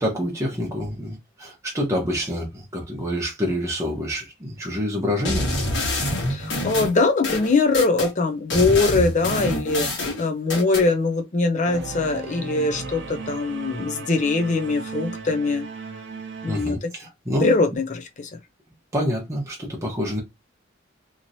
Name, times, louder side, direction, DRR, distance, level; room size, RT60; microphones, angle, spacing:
voice 1, 0.0-5.5 16.5-17.5 18.9-20.2, equal, 15° right, 1.0 m, -27 dB
sound 1, 5.3-8.1 8.5-10.9, left 1 dB, 65° left, 1.4 m, -26 dB
voice 2, 6.3-15.6 16.4-16.9 17.4-18.3, left 3 dB, 40° left, 0.5 m, -22 dB
Singing / Musical instrument, 11.6-16.7, right 4 dB, 60° right, 0.6 m, -35 dB
2.9 x 2.9 x 2.7 m
head